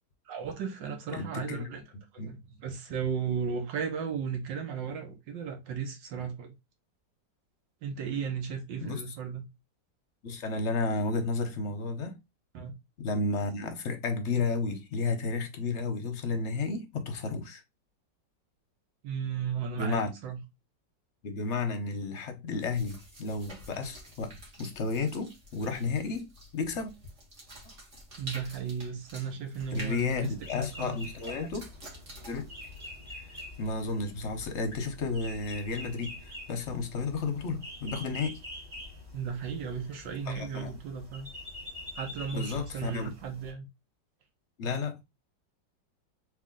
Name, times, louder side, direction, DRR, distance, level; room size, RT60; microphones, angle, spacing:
voice 1, 0.2-1.8 2.1-6.5 7.8-9.5 12.5-12.7 19.0-20.4 28.2-31.0 39.1-41.3 41.9-43.7, right 6 dB, 80° right, 1.7 m, -35 dB
voice 2, 1.2-1.7 2.2-2.3 8.8-9.0 10.2-12.1 13.0-17.6 19.7-20.1 21.2-26.3 26.5-26.9 29.7-31.7 32.3-32.5 33.6-38.4 40.3-40.7 42.3-43.1 44.6-45.0, left 3 dB, 50° left, 0.9 m, -32 dB
sound 1, 22.6-33.8, right 1 dB, 40° right, 1.8 m, -49 dB
sound 2, 29.5-43.5, left 2 dB, 25° right, 1.6 m, -46 dB
3.6 x 3.2 x 3.7 m
omnidirectional pair, 2.0 m